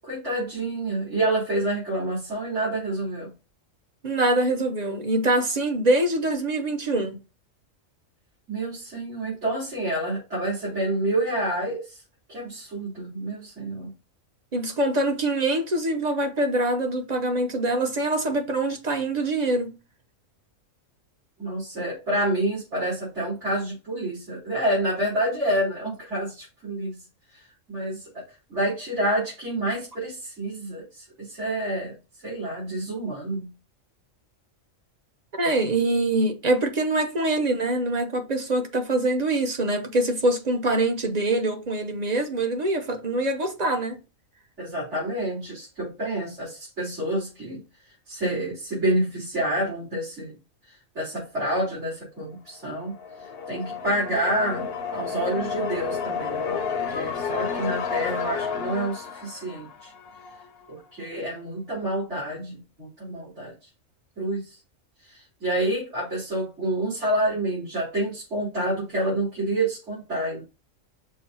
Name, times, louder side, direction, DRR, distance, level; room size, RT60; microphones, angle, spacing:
voice 1, 0.0-3.3 8.5-12.0 12.3-13.9 21.4-27.0 27.3-27.4 27.7-28.1 28.5-31.9 32.2-33.5 44.6-47.6 48.1-50.3 51.0-52.9 53.5-56.6 56.9-59.9 60.7-63.5 64.2-64.5 65.1-70.4, right 1 dB, 60° right, 4.0 m, -28 dB
voice 2, 4.0-7.2 14.5-19.7 35.4-44.0, right 2 dB, 35° right, 1.1 m, -24 dB
sound 1, 52.7-60.5, left 6 dB, 55° left, 0.8 m, -31 dB
6.4 x 2.7 x 5.6 m
omnidirectional pair, 1.4 m